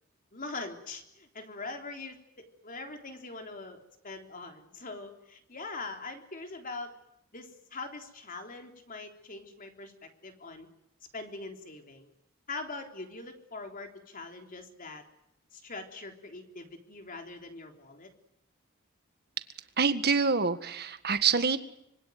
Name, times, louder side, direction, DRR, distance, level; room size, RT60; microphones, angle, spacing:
voice 1, 0.3-6.9 7.3-10.7 11.1-12.1 12.5-15.0 15.5-18.1, left 3 dB, 40° left, 4 dB, 3.6 m, -42 dB
voice 2, 19.8-21.6, right 5 dB, 50° right, 10 dB, 1.7 m, -26 dB
25.5 x 24.5 x 9.4 m, 0.80 s
head